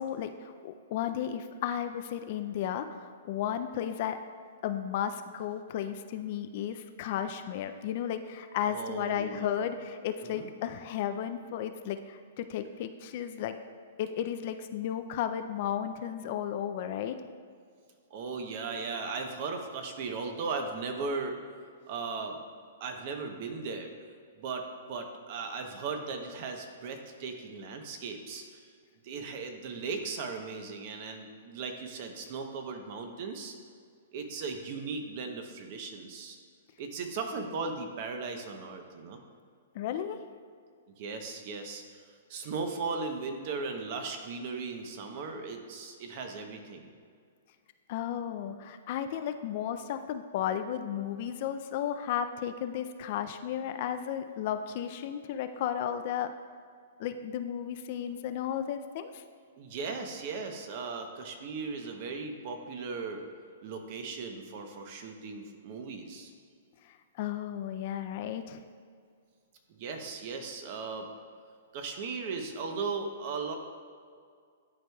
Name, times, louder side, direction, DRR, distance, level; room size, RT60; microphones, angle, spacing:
voice 1, 0.0-4.2 4.6-13.6 14.0-17.2 39.7-40.2 47.9-56.3 57.0-59.2 66.8-68.6, left 9 dB, 45° left, 8 dB, 0.4 m, -34 dB
voice 2, 8.7-9.6 10.2-10.5 18.1-21.4 21.9-22.4 22.8-23.9 24.4-28.6 29.0-33.5 34.1-36.4 36.8-39.2 41.0-42.0 42.3-46.9 59.6-63.2 63.6-66.3 69.7-71.1 71.7-73.6, right 4 dB, 45° right, 5 dB, 0.8 m, -37 dB
11.0 x 4.6 x 2.3 m, 2.1 s
hypercardioid pair, 145°, 0 cm